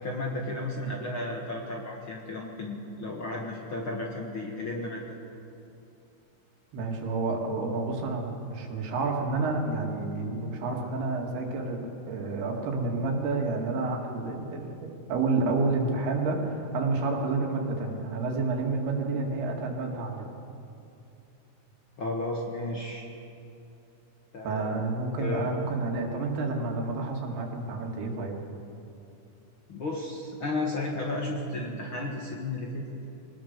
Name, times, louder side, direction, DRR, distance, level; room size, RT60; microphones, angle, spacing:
voice 1, 0.0-5.0 22.0-23.1 24.3-24.7 25.2-25.5 29.7-32.9, left 2 dB, 45° left, -1 dB, 1.8 m, -33 dB
voice 2, 6.7-11.8 12.1-20.3 24.4-28.3, right 3 dB, 85° right, 1 dB, 4.3 m, -29 dB
23.5 x 19.0 x 6.7 m, 2.8 s
omnidirectional pair, 4.5 m